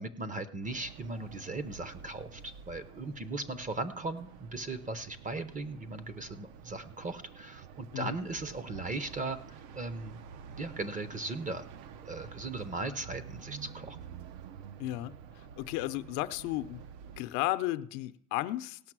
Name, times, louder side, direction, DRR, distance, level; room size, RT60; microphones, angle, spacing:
voice 1, 0.0-10.2 10.6-11.6 12.0-14.0, right 2 dB, 15° right, 12 dB, 0.6 m, -38 dB
sound 1, 0.6-17.2, right 7 dB, 70° right, 0.8 m, -49 dB
voice 2, 14.8-15.1 15.6-16.8 17.2-18.8, left 16 dB, 70° left, 11 dB, 0.7 m, -33 dB
17.5 x 5.9 x 6.1 m, 0.71 s
supercardioid pair, 120°, 47 cm